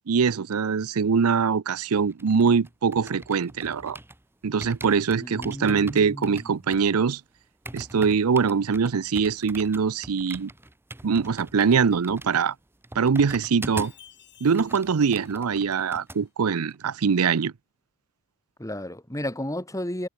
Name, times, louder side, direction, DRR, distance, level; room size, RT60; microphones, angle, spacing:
voice 1, 0.1-4.0 4.4-7.2 7.7-10.5 11.0-12.5 13.0-13.9 14.4-17.5, right 6 dB, 80° right, 0.6 m, -23 dB
sound 1, 2.0-4.2 4.6-14.1 14.4-16.2 16.5-16.8, right 1 dB, 10° right, 1.0 m, -42 dB
voice 2, 5.2-6.5 18.6-20.1, left 1 dB, 15° left, 4.0 m, -33 dB
Chime, 13.7-16.2, left 10 dB, 50° left, 6.4 m, -55 dB
head